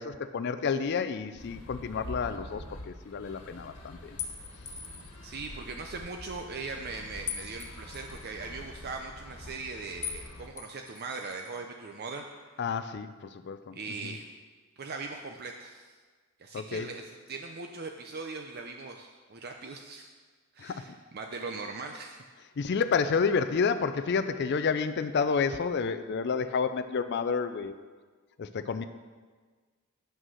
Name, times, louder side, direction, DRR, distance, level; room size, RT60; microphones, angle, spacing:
voice 1, 0.0-4.2 12.6-13.8 14.0-14.1 16.5-16.9 20.6-20.9 22.6-27.7 28.4-28.8, left 5 dB, 50° left, 10 dB, 0.4 m, -30 dB
sound 1, 1.4-10.5, left 1 dB, 80° left, 1.4 m, -46 dB
sound 2, 4.2-5.2 7.3-8.3 10.0-10.3 10.6-11.5, left 7 dB, 35° left, 0.8 m, -40 dB
voice 2, 5.2-12.5 13.7-14.3 14.8-15.9 16.4-20.1 20.5-22.2, right 4 dB, 45° right, 3 dB, 0.5 m, -40 dB
9.2 x 6.4 x 6.3 m, 1.5 s
head